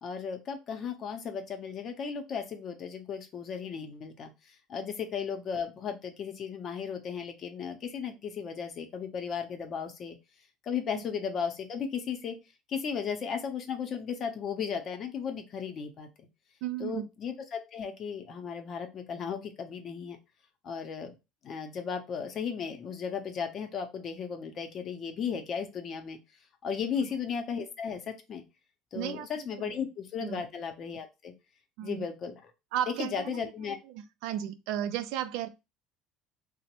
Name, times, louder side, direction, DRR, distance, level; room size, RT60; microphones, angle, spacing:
voice 1, 0.0-10.2 10.6-12.4 12.7-16.3 16.8-20.2 20.6-21.2 21.4-26.2 26.6-28.4 28.9-31.3 31.8-32.5 32.9-33.8, left 6 dB, 45° left, 0.6 m, -35 dB
voice 2, 16.6-17.1 28.9-29.3 30.3-30.4 31.8-32.0 32.7-33.3 34.2-35.5, right 11 dB, 75° right, 0.3 m, -33 dB
2.9 x 2.1 x 2.9 m
supercardioid pair, 105°, 0 cm